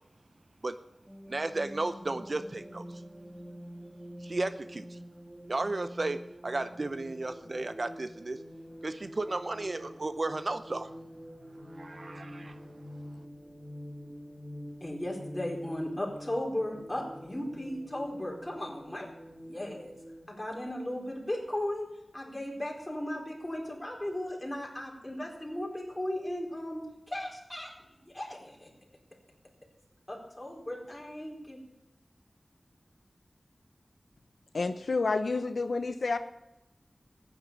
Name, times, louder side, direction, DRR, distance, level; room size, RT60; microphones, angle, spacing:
sound 1, 1.1-20.3, equal, 10° right, 1.8 m, -46 dB
voice 1, 1.3-3.0 4.2-5.0 5.5-8.4 8.8-10.9 11.4-12.6, right 2 dB, 50° right, 11 dB, 0.7 m, -34 dB
voice 2, 14.8-19.1 19.4-19.9 20.3-21.9 22.1-26.8 27.1-27.7 28.0-28.7 30.1-31.6, left 1 dB, 20° left, -1 dB, 4.5 m, -36 dB
voice 3, 34.5-36.2, left 3 dB, 85° left, 9 dB, 0.8 m, -29 dB
15.0 x 9.7 x 7.1 m, 0.91 s
wide cardioid pair, 75°, 0 cm